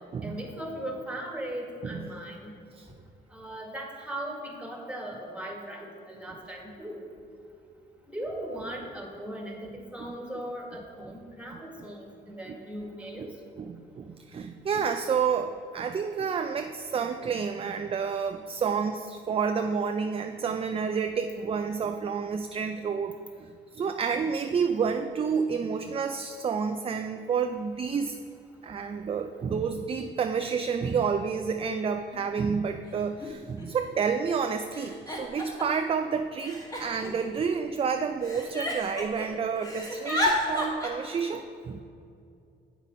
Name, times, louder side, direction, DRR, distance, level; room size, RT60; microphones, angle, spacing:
voice 1, 0.2-2.5 3.3-7.1 8.1-13.3, right 1 dB, 5° right, 0 dB, 1.7 m, -38 dB
voice 2, 13.6-28.2 28.6-41.8, right 6 dB, 30° right, 7 dB, 0.4 m, -29 dB
Giggle, 32.1-32.2 33.2-33.3 33.6-34.1 34.7-35.8 36.4-37.8 38.2-39.3 39.5-40.9, left 1 dB, 20° left, 1.7 m, -31 dB
8.1 x 5.5 x 5.1 m, 2.4 s
cardioid pair, 90°, 20 cm